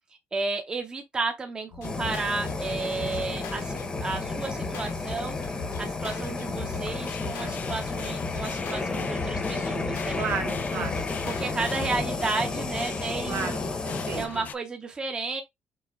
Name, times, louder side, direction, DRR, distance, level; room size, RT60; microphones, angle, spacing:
voice 1, 0.3-10.2 10.7-10.9 11.2-13.6 14.1-15.4, right 3 dB, 20° right, 0.6 m, -32 dB
sound 1, 1.7-12.2, left 4 dB, 80° left, 1.3 m, -40 dB
Fire, 1.8-14.3, left 3 dB, 20° left, 0.8 m, -32 dB
sound 2, 6.8-14.5, left 8 dB, 40° left, 0.4 m, -41 dB
voice 2, 10.2-11.1 13.3-14.4, right 6 dB, 65° right, 1.5 m, -33 dB
6.2 x 2.2 x 3.5 m
cardioid pair, 155°, 4 cm